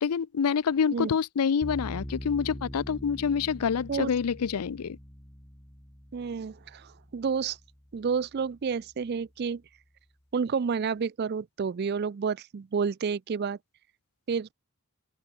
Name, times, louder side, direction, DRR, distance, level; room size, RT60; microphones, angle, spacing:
voice 1, 0.0-5.0, left 6 dB, 90° left, 0.5 m, -27 dB
sound 1, 1.6-8.7, equal, 15° left, 1.8 m, -43 dB
voice 2, 6.1-7.6 7.9-9.6 10.3-13.6 14.3-14.5, right 6 dB, 45° right, 0.4 m, -30 dB
open air
head